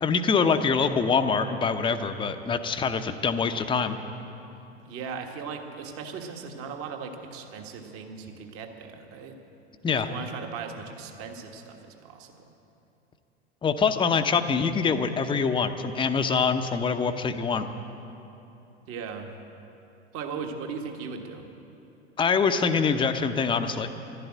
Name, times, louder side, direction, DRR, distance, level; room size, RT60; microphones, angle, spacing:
voice 1, 0.0-4.0 9.8-10.1 13.6-17.7 22.2-23.9, left 5 dB, 15° left, 7 dB, 0.7 m, -24 dB
voice 2, 4.8-9.4 9.9-12.5 18.9-19.3 20.1-21.4, right 5 dB, 40° right, 4 dB, 1.6 m, -38 dB
12.0 x 12.0 x 8.8 m, 2.9 s
figure-of-eight pair, 85°, 33 cm